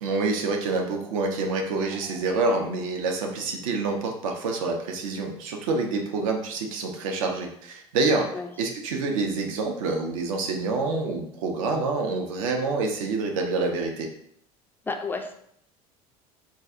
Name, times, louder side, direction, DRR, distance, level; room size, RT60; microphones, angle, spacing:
voice 1, 0.0-8.3 8.6-14.1, right 3 dB, 60° right, 2 dB, 0.6 m, -27 dB
sound 1, 1.7-2.3, right 1 dB, 80° right, 1.2 m, -48 dB
voice 2, 14.8-15.3, left 4 dB, 10° left, 4 dB, 0.4 m, -31 dB
4.0 x 2.3 x 2.4 m, 0.69 s
figure-of-eight pair, 70°, 19 cm